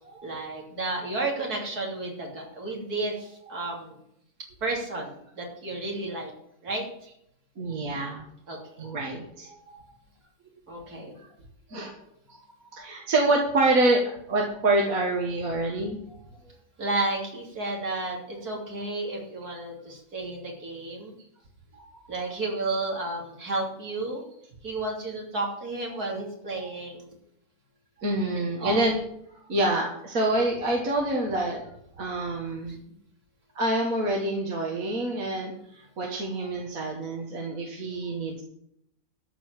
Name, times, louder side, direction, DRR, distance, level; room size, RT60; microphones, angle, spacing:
voice 1, 0.0-4.0 4.6-6.3 6.6-6.9 8.5-8.9 10.7-11.1 16.8-21.1 22.1-24.2 24.6-27.1 28.4-28.8, right 2 dB, 85° right, -2 dB, 3.7 m, -32 dB
voice 2, 7.6-8.2 8.8-9.9 11.7-11.9 12.3-12.4 12.7-16.2 21.7-22.0 26.6-26.7 28.0-29.0 29.5-31.7 32.0-32.8 33.6-38.4, right 2 dB, 65° right, -1 dB, 2.1 m, -27 dB
13.5 x 4.8 x 9.0 m, 0.74 s
omnidirectional pair, 1.6 m